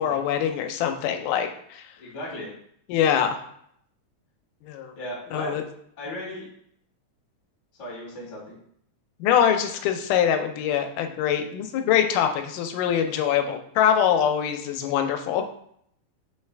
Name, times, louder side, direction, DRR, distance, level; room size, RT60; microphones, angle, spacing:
voice 1, 0.0-1.8 2.9-3.4 4.6-4.9 5.3-5.6 9.2-15.5, left 9 dB, 90° left, 6 dB, 2.1 m, -23 dB
voice 2, 2.0-2.5 4.9-5.6 6.0-6.4 7.8-8.4, equal, 40° left, -5 dB, 0.7 m, -35 dB
5.0 x 3.3 x 3.2 m, 0.69 s
omnidirectional pair, 3.6 m